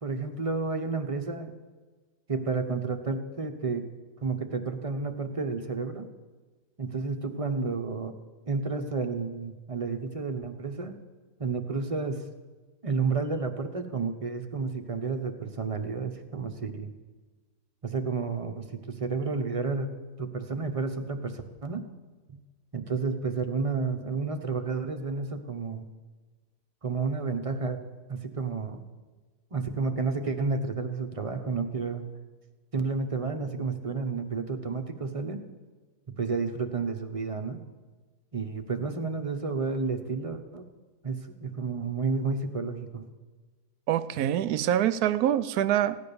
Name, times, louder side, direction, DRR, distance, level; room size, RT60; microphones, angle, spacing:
voice 1, 0.0-1.5 2.3-3.9 4.2-6.1 6.8-8.1 8.5-10.9 11.4-12.2 12.8-16.9 17.8-19.9 20.2-21.9 22.3-22.4 22.7-25.9 26.8-27.8 28.1-28.8 29.5-32.1 32.7-35.4 36.1-37.6 38.3-40.6 41.0-43.0, right 4 dB, 25° right, 6 dB, 0.9 m, -31 dB
voice 2, 43.9-46.0, right 11 dB, 75° right, 14 dB, 1.1 m, -25 dB
16.0 x 10.5 x 6.9 m, 1.3 s
omnidirectional pair, 1.7 m